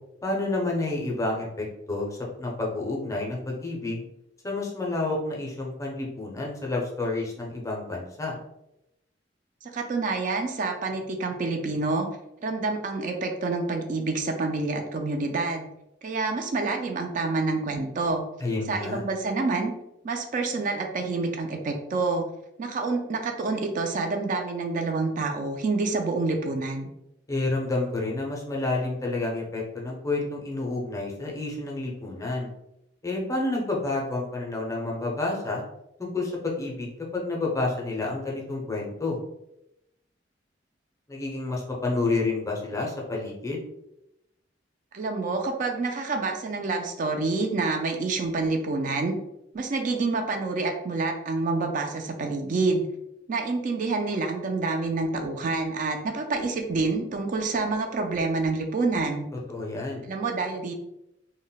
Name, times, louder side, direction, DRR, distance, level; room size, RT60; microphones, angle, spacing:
voice 1, 0.2-4.0 4.4-8.3 18.4-19.0 27.3-32.5 33.0-35.6 36.0-39.2 41.1-43.6 59.5-60.1, left 2 dB, 15° left, -2 dB, 0.5 m, -29 dB
voice 2, 9.6-12.1 12.4-15.7 16.0-18.2 18.7-19.7 20.0-22.2 22.6-26.9 44.9-49.1 49.5-52.8 53.3-59.3 60.1-60.7, right 3 dB, 45° right, 4 dB, 0.3 m, -27 dB
2.1 x 2.0 x 3.8 m, 0.85 s
head